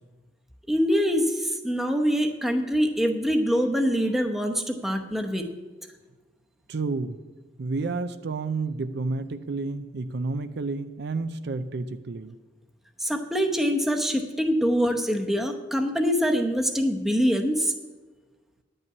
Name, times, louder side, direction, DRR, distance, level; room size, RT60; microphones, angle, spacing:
voice 1, 0.7-5.5 13.0-17.7, equal, ahead, 3 dB, 0.8 m, -24 dB
voice 2, 6.7-7.2 7.6-12.3, right 3 dB, 60° right, 10 dB, 0.5 m, -30 dB
10.5 x 5.5 x 8.4 m, 1.3 s
head